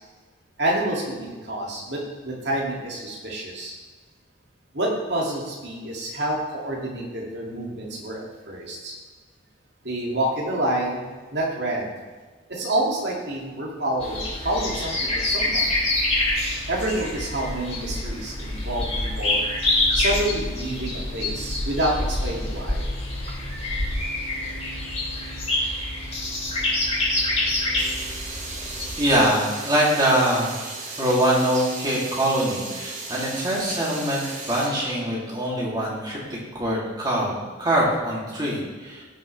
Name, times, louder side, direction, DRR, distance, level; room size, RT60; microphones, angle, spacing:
voice 1, 0.6-3.7 4.7-8.9 9.8-11.0 11.3-11.9 12.5-15.8 16.7-19.4 19.9-22.9, right 1 dB, 55° right, -3 dB, 2.4 m, -28 dB
sound 1, 14.0-29.1, left 2 dB, 30° left, 2.8 m, -26 dB
sound 2, 27.8-34.7, right 3 dB, 40° right, 1.5 m, -36 dB
voice 2, 29.0-30.6 31.0-39.0, right 1 dB, 20° right, -6 dB, 2.8 m, -23 dB
18.5 x 6.4 x 3.3 m, 1.4 s
head